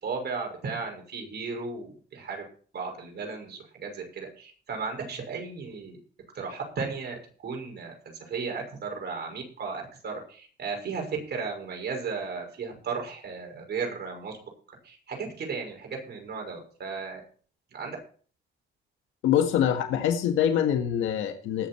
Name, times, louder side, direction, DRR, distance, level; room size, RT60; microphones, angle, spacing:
voice 1, 0.0-2.4 2.7-6.0 6.3-7.9 8.3-14.3 14.8-17.2 17.7-18.0, right 5 dB, 55° right, 2 dB, 6.0 m, -35 dB
voice 2, 19.2-21.7, left 9 dB, 90° left, 5 dB, 1.8 m, -24 dB
19.5 x 7.4 x 4.5 m, 0.43 s
cardioid pair, 90°, 20 cm